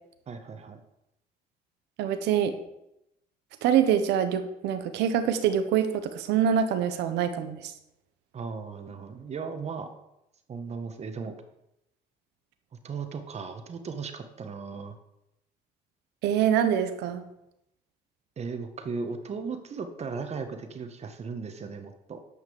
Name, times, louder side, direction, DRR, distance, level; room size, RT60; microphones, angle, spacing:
voice 1, 0.3-0.8 8.3-10.0 10.5-11.4 12.8-15.0 18.4-22.2, right 5 dB, 40° right, 7 dB, 1.6 m, -36 dB
voice 2, 2.0-2.5 3.6-7.7 16.2-17.2, right 9 dB, 85° right, 9 dB, 1.2 m, -25 dB
9.9 x 5.8 x 7.1 m, 0.85 s
cardioid pair, 110°, 17 cm